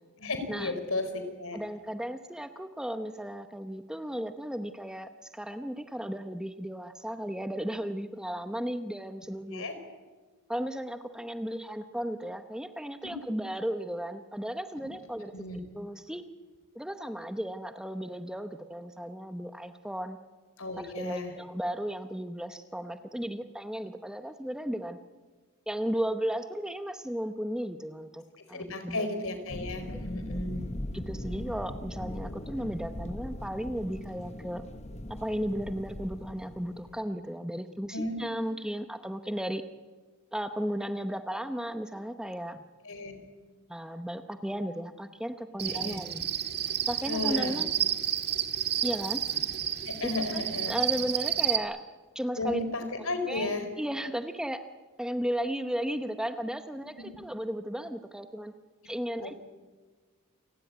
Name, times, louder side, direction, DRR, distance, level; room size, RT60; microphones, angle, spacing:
voice 1, 0.2-1.6 9.5-9.7 13.0-13.1 14.8-14.9 15.3-15.6 20.6-21.3 28.5-30.6 37.9-38.2 42.8-43.2 45.6-46.0 47.1-47.6 49.8-50.8 52.4-53.6 57.0-57.1 59.2-59.3, left 2 dB, 65° left, 8 dB, 4.4 m, -34 dB
voice 2, 1.5-9.6 10.5-16.3 16.7-20.2 20.8-25.0 25.7-28.2 28.5-29.1 29.9-30.0 30.3-30.4 30.9-34.6 35.1-39.6 40.3-42.6 43.7-46.2 46.9-47.8 48.8-49.2 50.0-51.8 52.1-52.6 53.3-54.6 55.0-58.5 58.8-59.3, equal, 5° right, 8 dB, 0.9 m, -35 dB
sound 1, 29.5-37.0, left 1 dB, 30° left, 1.2 m, -40 dB
Cricket, 45.6-51.6, right 11 dB, 45° right, 1.9 m, -30 dB
28.5 x 18.5 x 9.5 m, 1.4 s
head